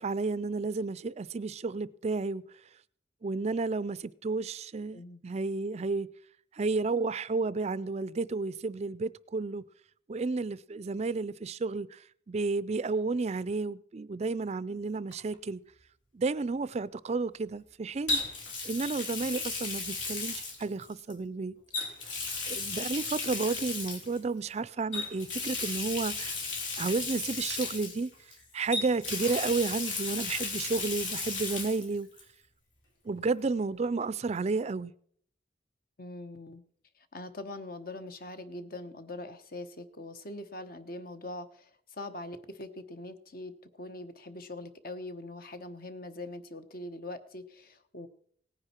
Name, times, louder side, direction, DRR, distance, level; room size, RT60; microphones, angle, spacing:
voice 1, 0.0-2.4 3.2-6.1 6.6-9.6 10.1-12.0 12.3-15.6 16.1-18.2 18.6-21.6 22.5-26.4 26.8-28.1 28.5-32.1 33.1-34.9, right 3 dB, 35° right, 0.4 m, -32 dB
Water tap faucet, 15.1-15.3 18.1-21.1 21.7-24.2 24.9-28.3 28.7-31.9 32.2-32.3 33.8-33.9, left 3 dB, 85° left, 3.1 m, -35 dB
voice 2, 36.0-36.6 37.0-48.1, left 2 dB, 50° left, 1.1 m, -42 dB
18.0 x 9.8 x 4.4 m
head